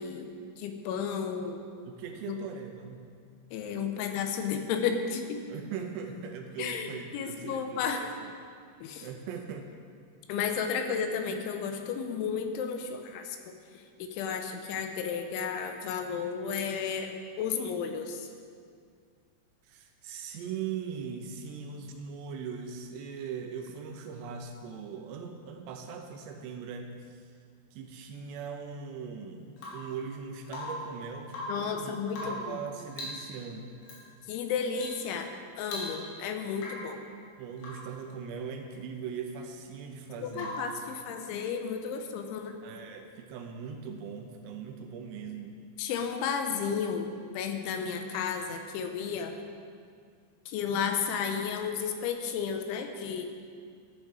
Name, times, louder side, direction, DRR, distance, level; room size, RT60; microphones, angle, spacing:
voice 1, 0.0-1.6 2.3-2.4 3.5-5.4 6.6-8.1 8.8-9.1 10.3-18.3 31.5-32.6 34.3-35.3 35.6-37.0 40.2-42.6 45.8-49.3 50.5-53.3, left 6 dB, 85° left, 5 dB, 3.3 m, -33 dB
voice 2, 1.9-3.1 5.5-8.3 9.0-9.7 19.6-27.2 27.7-32.0 32.2-33.7 37.4-40.6 42.6-45.6, right 6 dB, 80° right, 4 dB, 2.7 m, -40 dB
Rain / Water tap faucet / Drip, 29.6-29.9 30.5-30.9 31.2-31.7 32.1-32.5 32.9-33.3 33.8-34.0 34.7-35.0 35.3-35.4 35.6-36.2 36.5-36.9 37.6-37.9 40.3-40.8 42.7-42.8, left 1 dB, 65° left, 4.1 m, -39 dB
13.5 x 9.8 x 4.9 m, 2.2 s
omnidirectional pair, 5.3 m